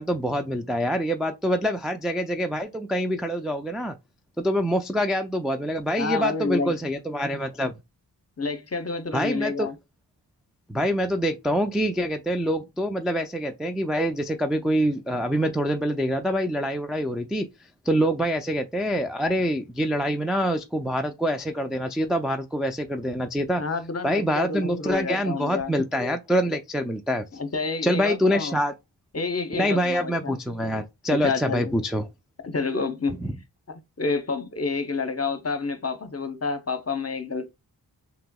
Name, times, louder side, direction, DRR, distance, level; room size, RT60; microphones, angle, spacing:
voice 1, 0.0-3.9 4.4-7.7 9.1-9.7 10.7-17.5 17.9-23.6 24.0-27.3 27.8-28.7 29.5-32.1, equal, ahead, 0.3 m, -25 dB
voice 2, 6.0-6.8 8.4-9.7 23.6-25.7 27.3-28.6 29.1-30.4 31.1-31.8 32.4-33.2 34.0-37.5, left 4 dB, 35° left, 0.7 m, -29 dB
5.5 x 2.0 x 2.2 m
cardioid pair, 40°, 44 cm